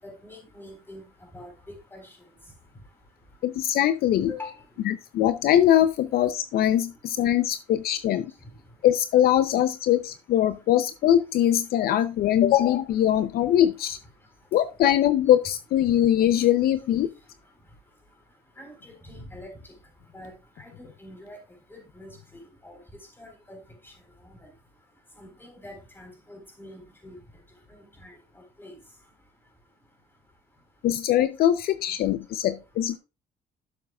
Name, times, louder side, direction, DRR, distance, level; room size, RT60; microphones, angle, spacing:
voice 1, 0.0-1.0 1.3-2.1 4.3-4.6 18.6-19.5 20.1-20.3 20.6-21.4 21.7-22.8 23.2-23.6 24.3-24.4 25.2-27.2 28.0-28.1 28.6-28.7, left 2 dB, 15° left, 3.8 m, -44 dB
voice 2, 3.4-4.3 4.9-8.3 8.8-14.0 14.5-17.1 30.8-33.0, left 11 dB, 65° left, 0.5 m, -22 dB
11.5 x 7.2 x 2.3 m
cardioid pair, 110°, 17 cm